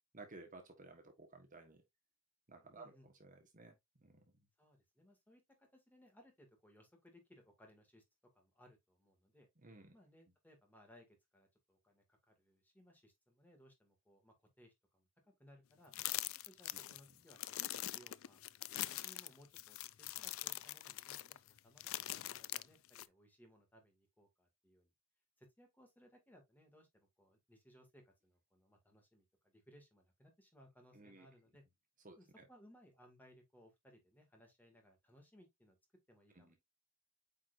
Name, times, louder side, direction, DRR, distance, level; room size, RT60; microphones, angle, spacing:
voice 1, 0.1-1.8 2.5-4.2 9.6-9.9 30.9-31.3 32.0-32.4 36.3-36.6, right 3 dB, 40° right, 1.5 m, -56 dB
voice 2, 2.7-3.1 4.6-8.0 8.3-9.5 9.9-15.1 15.4-15.9 16.3-18.4 18.9-24.9 25.4-31.6 32.2-35.8 36.1-36.6, equal, 10° left, 2.4 m, -65 dB
sound 1, 15.9-23.1, left 15 dB, 75° left, 0.4 m, -43 dB
8.7 x 4.6 x 2.6 m
head